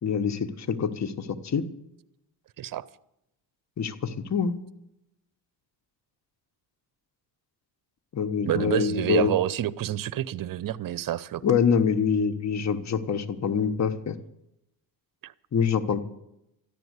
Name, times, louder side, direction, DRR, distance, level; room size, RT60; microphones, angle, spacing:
voice 1, 0.0-1.6 3.8-4.6 8.1-9.3 11.4-14.2 15.5-16.0, left 6 dB, 40° left, 8 dB, 1.1 m, -25 dB
voice 2, 8.4-11.4 15.2-15.3, right 12 dB, 50° right, 19 dB, 0.7 m, -28 dB
13.5 x 10.5 x 8.1 m, 0.83 s
cardioid pair, 85°, 43 cm